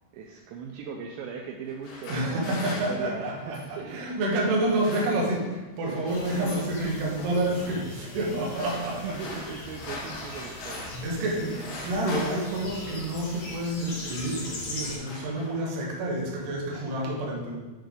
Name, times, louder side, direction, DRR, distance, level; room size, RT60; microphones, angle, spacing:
voice 1, 0.1-4.2 4.4-4.6 6.3-6.5 6.8-7.0 8.3-8.6 9.0-10.9 11.4-11.7 16.7-16.9, right 6 dB, 85° right, 1 dB, 2.5 m, -39 dB
sound 1, 1.6-3.8 4.5-5.5 5.8-6.7 7.2-7.6 8.3-11.1 11.3-13.5 14.2-14.5 14.7-15.8, left 2 dB, 75° left, 1.9 m, -41 dB
voice 2, 2.1-9.4 11.0-17.6, right 1 dB, 65° right, -2 dB, 2.4 m, -29 dB
sound 2, 6.1-15.0, left 2 dB, 55° left, 2.6 m, -40 dB
9.0 x 5.5 x 3.6 m, 1.2 s
omnidirectional pair, 5.6 m